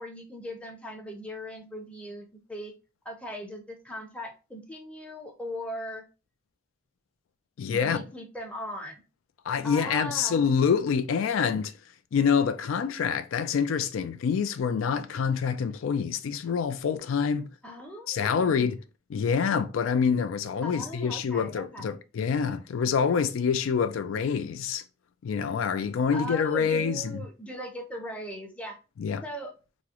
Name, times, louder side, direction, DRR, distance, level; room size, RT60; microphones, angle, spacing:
voice 1, 0.0-2.7 3.0-6.0 7.7-9.0 9.6-10.4 17.6-18.5 20.6-22.0 26.1-28.8 29.2-29.5, equal, 5° left, 0.6 m, -39 dB
voice 2, 7.6-8.0 9.5-11.7 12.1-17.5 18.1-18.8 19.1-24.8 25.2-27.2 29.0-29.2, left 6 dB, 85° left, 0.4 m, -26 dB
3.6 x 2.0 x 2.8 m
head